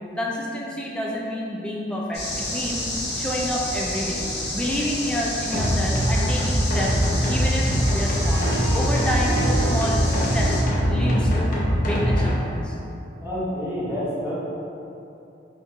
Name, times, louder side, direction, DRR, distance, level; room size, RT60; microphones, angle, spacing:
voice 1, 0.0-4.3 4.5-7.0 7.3-10.0 10.3-10.6 10.9-12.8, equal, 5° left, -4 dB, 0.4 m, -29 dB
sound 1, 2.1-10.6, left 1 dB, 75° left, 1.3 m, -30 dB
sound 2, 5.5-12.3, equal, 50° left, 0.6 m, -22 dB
Harp, 7.6-12.8, right 3 dB, 60° right, 0.4 m, -35 dB
voice 2, 13.2-14.3, equal, 15° right, -10 dB, 1.0 m, -28 dB
4.1 x 2.9 x 3.1 m, 2.7 s
head